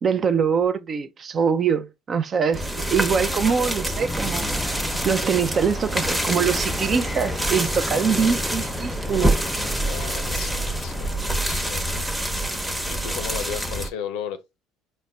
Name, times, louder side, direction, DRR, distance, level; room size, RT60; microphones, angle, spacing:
voice 1, 0.0-4.5 5.0-9.4, right 6 dB, 45° right, 0.5 m, -23 dB
sound 1, 2.5-13.9, right 1 dB, 5° right, 0.8 m, -26 dB
sound 2, 2.7-12.4, right 2 dB, 80° right, 1.0 m, -46 dB
sound 3, 4.0-11.1, left 2 dB, 20° left, 0.4 m, -36 dB
voice 2, 9.8-14.4, left 9 dB, 75° left, 0.5 m, -36 dB
4.1 x 2.1 x 3.3 m
hypercardioid pair, 70°, 0 cm